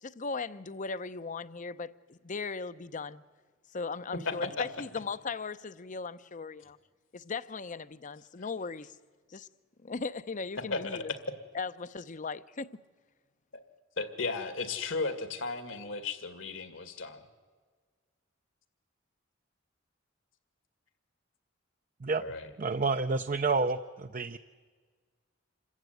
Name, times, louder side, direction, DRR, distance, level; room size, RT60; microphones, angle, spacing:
voice 1, 0.0-3.2 3.7-6.8 7.1-8.9 9.3-9.5 9.8-11.1 11.5-12.7, left 4 dB, 40° left, 0.7 m, -38 dB
voice 2, 4.1-4.7 10.7-11.0 13.5-13.6 14.0-17.2 22.2-22.5, left 3 dB, 75° left, 2.1 m, -35 dB
voice 3, 22.6-24.4, right 4 dB, 40° right, 0.6 m, -29 dB
27.0 x 15.0 x 9.3 m
head